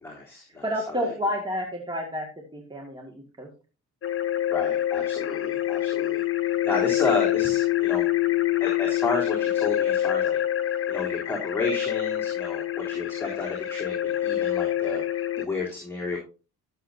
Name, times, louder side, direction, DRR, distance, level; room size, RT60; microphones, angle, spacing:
voice 1, 0.0-1.1 4.5-6.2 6.6-8.1 8.6-10.4 10.9-15.0 15.4-16.2, left 3 dB, 10° left, -5 dB, 3.4 m, -31 dB
voice 2, 0.6-2.3 2.5-3.5, equal, 15° right, 0 dB, 2.0 m, -30 dB
sound 1, 4.0-15.5, left 13 dB, 45° left, 1.0 m, -26 dB
14.0 x 7.4 x 2.7 m, 0.33 s
cardioid pair, 90°, 30 cm